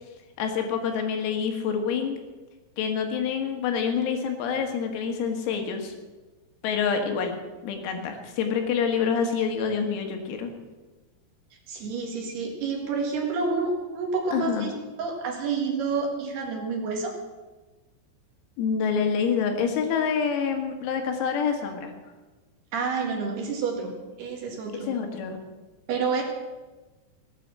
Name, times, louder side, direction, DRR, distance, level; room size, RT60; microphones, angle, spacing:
voice 1, 0.4-2.2 2.8-5.9 6.6-10.5 14.3-14.7 18.6-21.9 24.8-25.4, left 6 dB, 85° left, 4 dB, 4.5 m, -27 dB
voice 2, 11.7-14.7 15.0-17.1 22.7-24.9 25.9-26.2, right 4 dB, 60° right, 1 dB, 3.4 m, -29 dB
17.5 x 9.4 x 7.6 m, 1.2 s
omnidirectional pair, 6.0 m